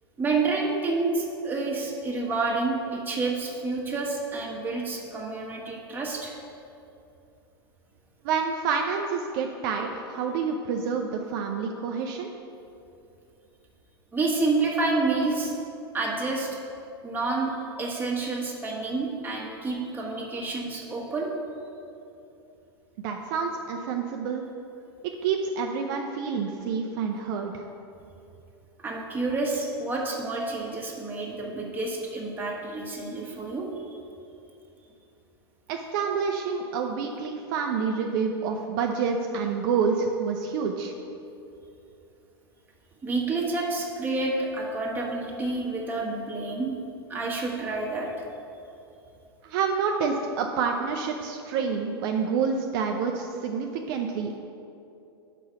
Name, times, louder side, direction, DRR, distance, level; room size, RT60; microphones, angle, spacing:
voice 1, 0.2-6.3 14.1-15.5 15.9-16.5 17.0-17.5 17.8-21.3 28.8-33.7 43.0-46.7 47.1-48.2, right 3 dB, 15° right, -3 dB, 1.3 m, -29 dB
voice 2, 8.2-12.3 23.0-24.4 25.2-27.6 35.7-40.9 49.4-54.4, right 5 dB, 55° right, 3 dB, 0.5 m, -28 dB
5.5 x 5.0 x 5.7 m, 2.8 s
hypercardioid pair, 100°, 13 cm